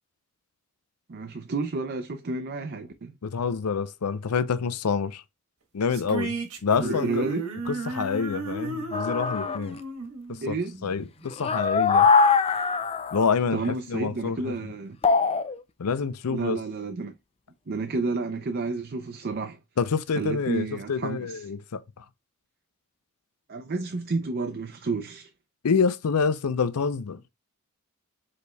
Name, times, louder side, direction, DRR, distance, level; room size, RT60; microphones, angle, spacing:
voice 1, 1.1-3.1 6.8-7.4 10.4-10.7 13.5-15.0 16.3-17.1 17.7-19.6 20.2-21.5 23.5-25.3, right 3 dB, 45° right, 0.5 m, -31 dB
voice 2, 3.2-5.2 5.7-7.3 7.7-9.8 10.3-10.5 10.8-12.1 13.1-14.5 15.8-16.6 19.8-22.0 25.6-27.2, left 5 dB, 85° left, 0.5 m, -27 dB
sound 1, 5.9-11.3, right 1 dB, 75° right, 1.3 m, -34 dB
sound 2, 8.9-9.6 11.3-13.3 15.0-15.6, left 5 dB, 25° left, 0.4 m, -22 dB
5.0 x 4.1 x 2.2 m
head